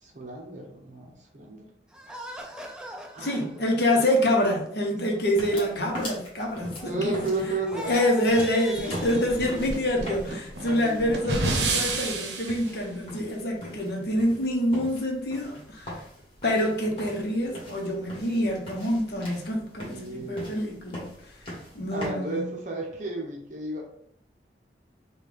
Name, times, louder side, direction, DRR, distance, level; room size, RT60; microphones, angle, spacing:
voice 1, 0.0-1.7 3.1-3.6 6.8-8.1 10.6-11.8 19.8-20.6 21.9-23.8, right 2 dB, 45° right, -1 dB, 0.7 m, -34 dB
sound 1, 1.9-7.3 7.6-10.1, right 1 dB, 5° right, 0.3 m, -42 dB
voice 2, 3.2-7.3 7.9-16.0 16.4-21.1 21.7-22.5, left 1 dB, 65° left, 0 dB, 0.8 m, -26 dB
sound 2, 5.2-22.1, left 1 dB, 30° left, 1.3 m, -42 dB
sound 3, 8.8-12.7, right 3 dB, 80° right, 0.6 m, -30 dB
3.7 x 2.3 x 3.3 m, 0.67 s
head